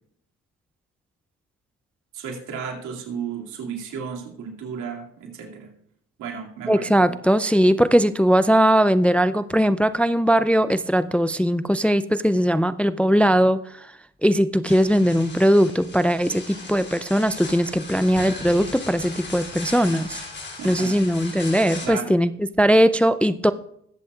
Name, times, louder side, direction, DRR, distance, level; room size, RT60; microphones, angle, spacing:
voice 1, 2.1-5.7 6.2-6.9 20.6-20.9 21.8-22.1, right 6 dB, 85° right, 0 dB, 2.4 m, -33 dB
voice 2, 6.7-13.9 14.2-20.2 20.6-22.3 22.6-23.5, equal, 5° left, 13 dB, 0.3 m, -19 dB
sound 1, 14.6-21.9, left 3 dB, 35° left, 2.9 m, -38 dB
20.0 x 8.0 x 2.4 m, 0.70 s
cardioid pair, 90°, 30 cm